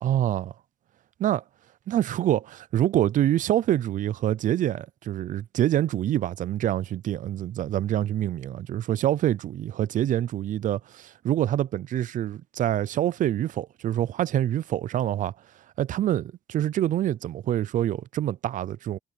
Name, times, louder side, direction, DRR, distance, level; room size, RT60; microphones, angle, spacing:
voice 1, 0.0-0.5 1.2-1.4 1.9-15.3 15.8-19.0, right 12 dB, 50° right, 0.5 m, -26 dB
cardioid pair, 110°, 17 cm